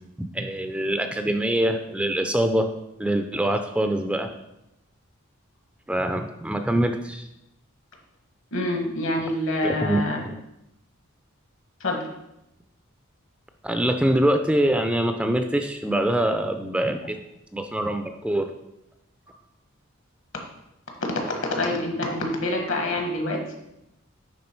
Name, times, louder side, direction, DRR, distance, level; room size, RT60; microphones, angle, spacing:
voice 1, 0.2-2.7 3.0-4.3 5.9-7.3 9.8-10.0 13.6-17.2 17.5-18.5, right 1 dB, 5° right, 6 dB, 0.4 m, -24 dB
voice 2, 8.5-10.2 11.8-12.1 21.0-23.5, left 1 dB, 65° left, 2 dB, 1.4 m, -26 dB
9.6 x 3.6 x 4.5 m, 0.86 s
head